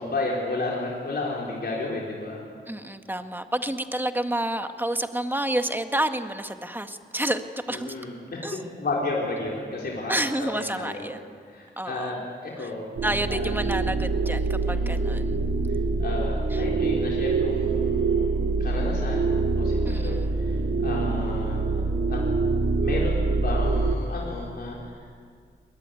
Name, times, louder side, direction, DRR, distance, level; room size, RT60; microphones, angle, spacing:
voice 1, 0.0-2.4 7.7-10.2 10.6-11.1 11.5-12.9 13.3-13.5 14.7-15.1 16.0-19.3 19.6-20.2 20.5-21.6 22.1-22.2 22.8-24.8, left 2 dB, 60° left, -3 dB, 4.3 m, -32 dB
voice 2, 2.7-8.0 8.4-8.7 10.1-11.4 11.8-12.2 12.6-12.7 13.0-15.4 16.5-16.6 19.9-20.4, right 1 dB, 10° right, 7 dB, 1.8 m, -29 dB
sound 1, 13.0-24.0, right 3 dB, 75° right, 2.1 m, -25 dB
23.5 x 20.5 x 9.2 m, 2.1 s
cardioid pair, 60°, 19 cm